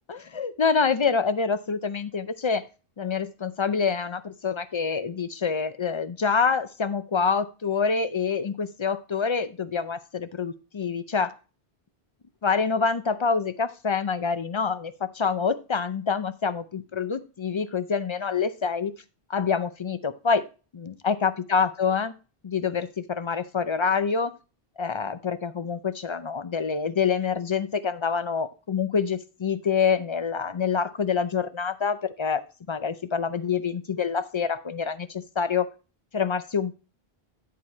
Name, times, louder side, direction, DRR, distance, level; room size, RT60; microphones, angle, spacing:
voice 1, 0.1-2.6 3.0-11.3 12.4-18.9 19.3-20.4 20.7-22.1 22.4-24.4 24.8-32.4 32.7-35.7 36.1-36.7, left 5 dB, 45° left, 13 dB, 0.4 m, -26 dB
10.0 x 4.7 x 4.2 m, 0.33 s
omnidirectional pair, 1.1 m